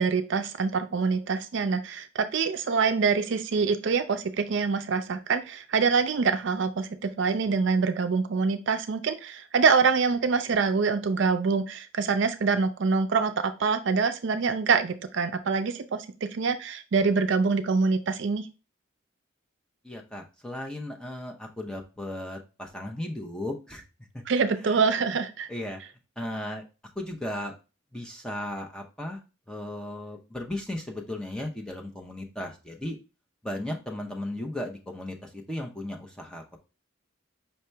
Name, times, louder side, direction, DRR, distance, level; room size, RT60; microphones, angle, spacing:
voice 1, 0.0-18.5 24.3-25.5, right 5 dB, 60° right, 9 dB, 0.4 m, -25 dB
voice 2, 19.8-23.8 24.1-24.2 24.6-24.8 25.5-25.8 26.2-26.6 27.0-27.5 27.9-29.2 29.5-33.0 33.4-36.6, left 1 dB, 5° left, 1 dB, 0.6 m, -36 dB
5.4 x 2.8 x 3.3 m, 0.31 s
head